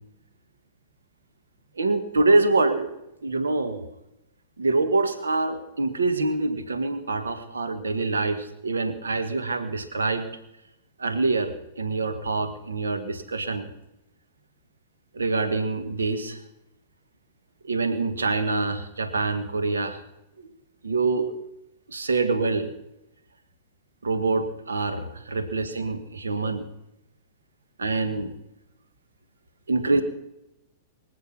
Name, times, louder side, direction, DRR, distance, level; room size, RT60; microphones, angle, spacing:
voice 1, 1.7-2.9 3.2-3.8 4.6-10.3 11.0-13.7 15.1-16.4 17.6-20.0 20.4-20.5 20.8-21.3 21.9-22.7 24.0-26.7 27.8-28.3 29.7-30.0, right 3 dB, 75° right, 9 dB, 1.5 m, -25 dB
23.5 x 8.6 x 5.9 m, 0.90 s
figure-of-eight pair, 100°, 0 cm